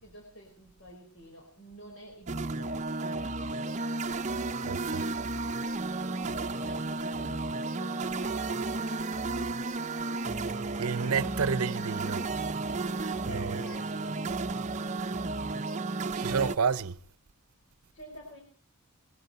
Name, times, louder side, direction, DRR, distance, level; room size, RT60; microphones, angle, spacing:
voice 1, 0.0-2.8 5.9-10.1 12.5-14.2 17.9-18.4, equal, 60° left, 4.8 m, -50 dB
sound 1, 2.3-16.6, right 3 dB, 35° right, 0.7 m, -33 dB
voice 2, 4.7-5.0 10.8-12.2 13.3-13.5 16.2-17.0, right 6 dB, 90° right, 0.7 m, -30 dB
21.5 x 13.5 x 4.3 m
head